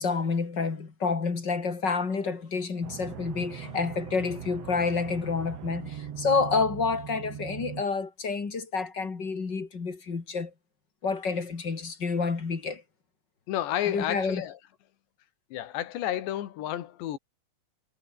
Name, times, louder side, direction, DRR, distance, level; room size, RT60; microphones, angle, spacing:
voice 1, 0.0-10.5 11.0-12.8 13.9-14.4, left 4 dB, 30° left, 2.8 m, -29 dB
sound 1, 2.8-7.8, right 9 dB, 55° right, 1.9 m, -40 dB
voice 2, 13.5-14.6 15.5-17.2, left 12 dB, 85° left, 4.0 m, -31 dB
omnidirectional pair, 4.9 m